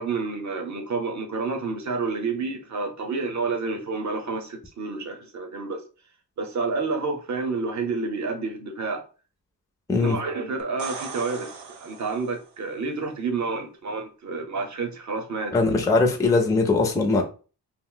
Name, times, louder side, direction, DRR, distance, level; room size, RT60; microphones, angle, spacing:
voice 1, 0.0-5.8 6.4-9.0 9.9-15.6, right 4 dB, 45° right, 0.7 m, -29 dB
sound 1, 10.6-12.5 16.2-16.3, right 5 dB, 85° right, 0.8 m, -38 dB
voice 2, 15.5-17.2, left 3 dB, 10° left, 0.4 m, -20 dB
2.4 x 2.0 x 3.7 m
wide cardioid pair, 125°, 39 cm